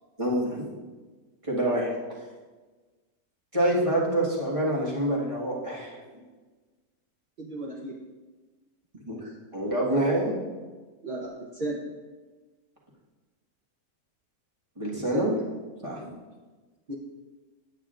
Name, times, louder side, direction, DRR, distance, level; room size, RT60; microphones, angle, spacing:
voice 1, 0.2-0.7 1.4-1.9 3.5-6.0 9.1-9.2 9.5-10.4 14.8-15.3 15.8-16.1, right 1 dB, 20° right, -5 dB, 1.5 m, -26 dB
voice 2, 7.4-7.9 9.2-9.3 9.6-10.0 11.0-11.8 15.1-15.3 16.1-16.2 16.9-17.0, right 2 dB, 40° right, -4 dB, 0.8 m, -35 dB
9.1 x 8.4 x 2.5 m, 1.3 s
omnidirectional pair, 1.6 m